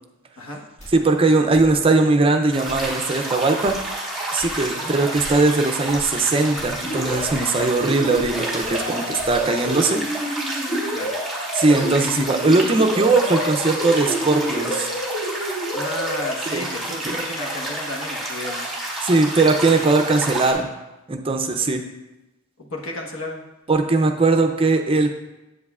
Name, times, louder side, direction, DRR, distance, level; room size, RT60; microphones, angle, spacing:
sound 1, 0.8-0.9 1.5-1.7 2.7-2.9 3.6-3.8 4.4-4.5 5.1-5.3 5.9-6.1 6.6-6.7 7.2-7.4 8.1-8.3 8.6-8.7 9.2-9.3, equal, 35° left, 1.8 m, -40 dB
voice 1, 0.9-3.8 4.3-10.0 11.5-14.9 16.5-16.7 17.1-17.2 19.0-20.7 21.1-21.8 23.7-25.1, right 3 dB, 25° right, 5 dB, 0.5 m, -19 dB
sound 2, 2.5-20.5, right 1 dB, ahead, 1.3 m, -30 dB
sound 3, 6.8-16.3, equal, 55° left, 1.8 m, -29 dB
voice 2, 15.7-18.7 22.6-23.4, left 1 dB, 80° left, 0 dB, 1.2 m, -32 dB
8.0 x 7.8 x 2.4 m, 1.0 s
head